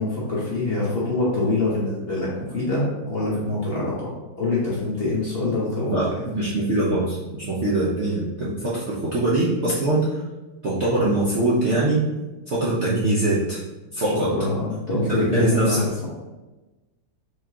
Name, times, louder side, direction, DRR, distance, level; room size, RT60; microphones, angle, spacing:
voice 1, 0.0-4.1 4.4-6.1 14.3-16.1, left 2 dB, 40° left, -6 dB, 1.0 m, -25 dB
voice 2, 5.9-10.1 10.6-12.0 12.5-13.6 13.9-14.3 15.1-15.8, right 2 dB, 50° right, -8 dB, 0.8 m, -22 dB
4.7 x 3.9 x 2.9 m, 1.1 s
omnidirectional pair, 2.1 m